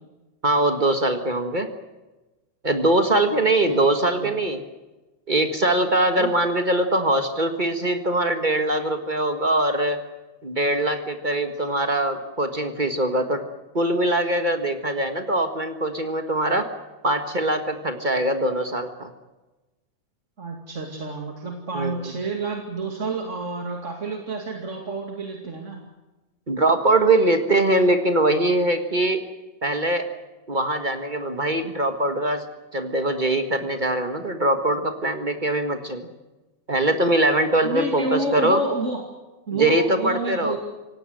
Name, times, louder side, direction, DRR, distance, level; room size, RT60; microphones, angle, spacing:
voice 1, 0.4-1.7 2.6-4.6 5.3-10.0 10.4-13.4 13.7-16.6 17.0-19.1 21.7-22.0 26.5-29.2 29.6-30.1 30.5-32.4 32.7-36.0 36.7-38.6 39.5-40.6, right 1 dB, 45° right, 6 dB, 0.6 m, -22 dB
voice 2, 3.5-3.9 4.1-4.3 6.2-6.3 20.4-25.8 37.6-39.0 39.5-40.6, right 3 dB, 25° right, 2 dB, 2.2 m, -29 dB
27.0 x 18.0 x 7.8 m, 1.1 s
omnidirectional pair, 3.6 m